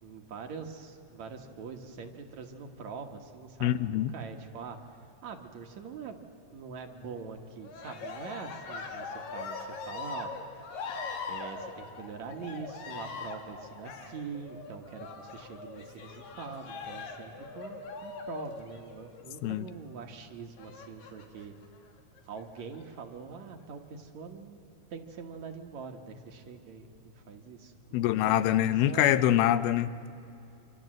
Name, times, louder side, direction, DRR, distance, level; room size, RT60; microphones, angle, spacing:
voice 1, 0.0-4.8 5.2-6.2 6.5-10.3 11.3-21.6 22.3-26.9 27.1-29.5, right 5 dB, 60° right, 4 dB, 2.3 m, -44 dB
voice 2, 3.6-4.1 19.4-19.7 27.9-30.1, left 12 dB, 90° left, 13 dB, 2.7 m, -25 dB
Cheering, 7.6-19.3 20.6-21.5 22.2-22.8, left 4 dB, 70° left, 3.6 m, -41 dB
27.0 x 26.0 x 7.7 m, 2.7 s
omnidirectional pair, 4.2 m